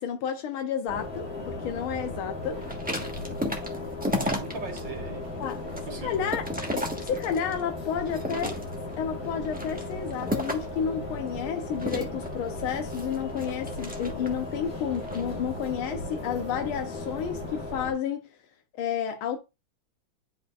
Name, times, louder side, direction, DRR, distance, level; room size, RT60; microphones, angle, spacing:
voice 1, 0.0-2.6 5.4-5.6 6.0-6.5 6.7-8.6 9.0-18.2 18.7-19.4, left 8 dB, 85° left, 1.7 m, -31 dB
sound 1, 0.9-17.9, left 2 dB, 45° left, 2.0 m, -36 dB
sound 2, 2.6-4.8 5.2-7.6 8.1-8.9 9.4-10.8 11.8-14.5 14.9-15.3, equal, 5° right, 0.9 m, -33 dB
voice 2, 4.0-6.2, right 5 dB, 60° right, 2.0 m, -41 dB
10.5 x 5.2 x 2.4 m
omnidirectional pair, 2.3 m